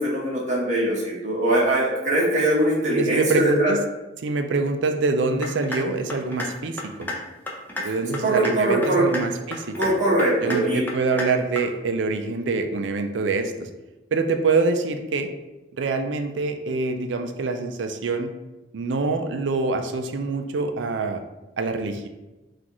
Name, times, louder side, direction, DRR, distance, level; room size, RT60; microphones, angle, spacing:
voice 1, 0.0-3.7 7.9-8.0 8.2-9.0 9.8-10.8, right 1 dB, 40° right, -6 dB, 1.0 m, -22 dB
voice 2, 2.9-3.8 4.2-7.1 7.8-9.9 10.4-13.7 14.1-15.3 15.8-18.3 18.7-21.2 21.6-22.1, right 3 dB, 85° right, 6 dB, 0.4 m, -25 dB
sound 1, 5.4-5.8 6.1-6.5 6.8-7.2 7.5-7.8 8.1-8.5 8.8-9.2 9.5-9.9 10.2-10.6 10.9-11.3 11.6-11.7, left 2 dB, 10° left, 0.5 m, -30 dB
5.9 x 2.5 x 3.0 m, 1.0 s
head